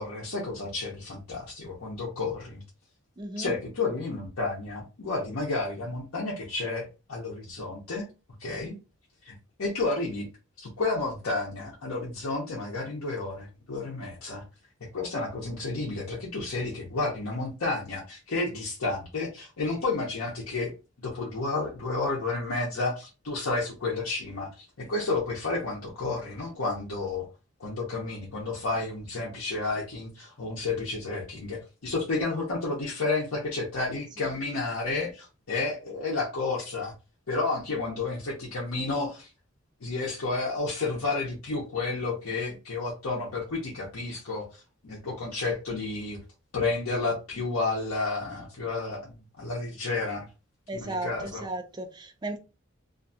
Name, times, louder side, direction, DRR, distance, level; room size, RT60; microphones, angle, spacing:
voice 1, 0.0-2.6 3.4-8.0 8.4-8.7 9.2-10.3 10.6-14.4 14.9-20.7 21.0-27.3 27.6-36.9 37.3-39.3 39.8-44.5 44.8-46.2 46.5-50.3 50.7-51.5, left 3 dB, 85° left, 0.7 m, -31 dB
voice 2, 3.2-3.5 50.7-52.4, right 2 dB, 20° right, 0.4 m, -35 dB
2.5 x 2.3 x 2.6 m
head